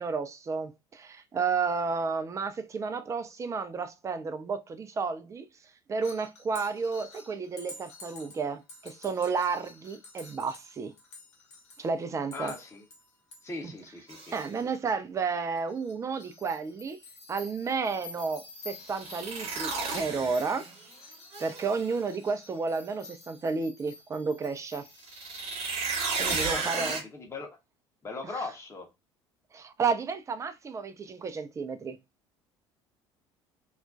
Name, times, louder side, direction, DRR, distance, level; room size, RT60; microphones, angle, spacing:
voice 1, 0.0-5.5 5.9-10.9 11.8-12.5 13.6-13.7 14.3-17.0 17.3-20.7 21.4-24.9 26.2-27.0 29.5-32.0, right 5 dB, 20° right, 0.4 m, -32 dB
sound 1, 6.0-11.9 12.2-15.2 15.6-25.5, left 3 dB, 75° left, 0.7 m, -50 dB
voice 2, 12.3-12.8 13.4-14.3 26.3-27.6 28.0-28.9, left 3 dB, 20° left, 0.8 m, -39 dB
sound 2, 14.1-14.4 18.8-20.9 21.3-22.0 25.0-27.0, right 4 dB, 45° right, 0.9 m, -33 dB
2.4 x 2.1 x 2.4 m
figure-of-eight pair, 60°, 15 cm